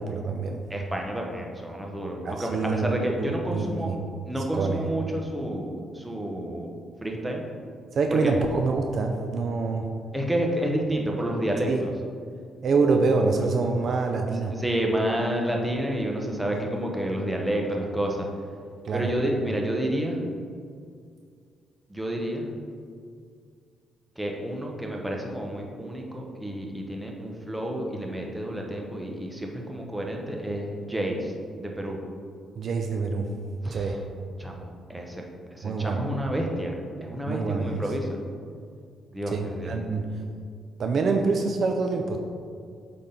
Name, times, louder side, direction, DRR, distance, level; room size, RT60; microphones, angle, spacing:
voice 1, 0.0-0.6 2.2-4.0 4.5-4.8 7.9-9.9 11.7-11.8 12.6-14.5 18.8-19.1 32.6-33.3 33.7-34.0 35.6-36.0 37.3-37.8 39.3-40.1 40.8-42.2, right 4 dB, 55° right, 4 dB, 0.5 m, -26 dB
voice 2, 0.7-3.9 4.3-6.7 7.0-7.4 8.1-8.3 10.1-11.9 14.6-18.2 18.9-20.2 21.9-22.5 24.2-31.3 31.6-32.0 33.6-34.0 34.4-35.2 35.5-38.1 39.1-39.7, right 1 dB, 10° right, 0 dB, 1.0 m, -29 dB
8.1 x 3.8 x 3.9 m, 2.2 s
cardioid pair, 90°, 0 cm